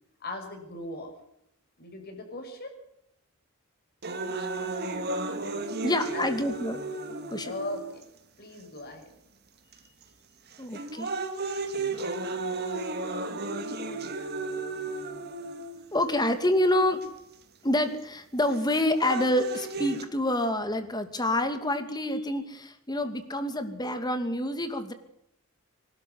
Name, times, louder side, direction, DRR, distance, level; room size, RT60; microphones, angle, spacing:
voice 1, 0.2-1.1 1.8-2.7 6.1-6.3 7.4-8.0 8.4-9.1, left 1 dB, 45° left, 4 dB, 6.4 m, -38 dB
sound 1, 4.0-8.0 8.8-8.9 9.7-10.0 10.5-16.0 17.0-17.1 18.5-20.0, right 3 dB, 50° right, 2.8 m, -34 dB
voice 2, 5.8-6.8 7.3-7.5 10.6-11.1 15.9-17.0 17.6-24.9, left 1 dB, 20° left, 9 dB, 2.4 m, -27 dB
25.0 x 12.5 x 9.7 m, 0.78 s
head